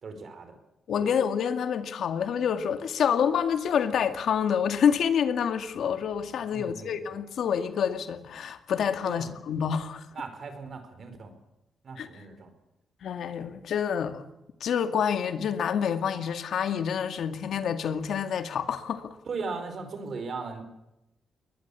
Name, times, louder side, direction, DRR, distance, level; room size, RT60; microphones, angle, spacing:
voice 1, 0.0-0.5 1.0-1.1 6.5-6.9 9.0-9.3 10.1-11.3 11.8-12.5 19.3-20.6, right 4 dB, 45° right, 4.8 m, -37 dB
voice 2, 0.9-10.1 12.0-12.1 13.0-14.3 14.6-19.2, left 7 dB, 70° left, 2.1 m, -27 dB
22.0 x 20.5 x 8.5 m
cardioid pair, 135°, 0 cm